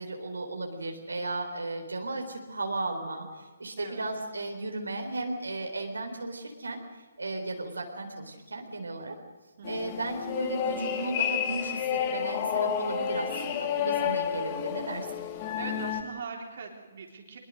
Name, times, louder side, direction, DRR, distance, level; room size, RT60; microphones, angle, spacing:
voice 1, 0.0-9.2 9.7-15.1, right 2 dB, 80° right, 3 dB, 4.0 m, -35 dB
voice 2, 3.8-4.1 9.6-10.0 15.6-17.4, right 5 dB, 55° right, 2 dB, 3.8 m, -41 dB
sound 1, 9.6-16.0, left 8 dB, 35° left, 2.3 m, -30 dB
23.5 x 22.0 x 6.5 m, 1.3 s
figure-of-eight pair, 135°, 0 cm